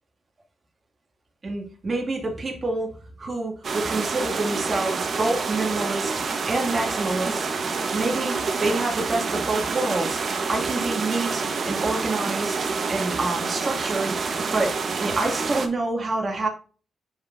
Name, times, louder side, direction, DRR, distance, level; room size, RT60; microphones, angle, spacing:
voice 1, 1.4-2.9 3.2-7.5 7.9-12.6 12.9-14.1 14.5-14.7 15.0-16.5, right 2 dB, 30° right, 0 dB, 2.2 m, -27 dB
sound 1, 3.6-15.7, right 4 dB, 45° right, 1.1 m, -27 dB
10.0 x 4.2 x 2.6 m, 0.39 s
wide cardioid pair, 140°, 0 cm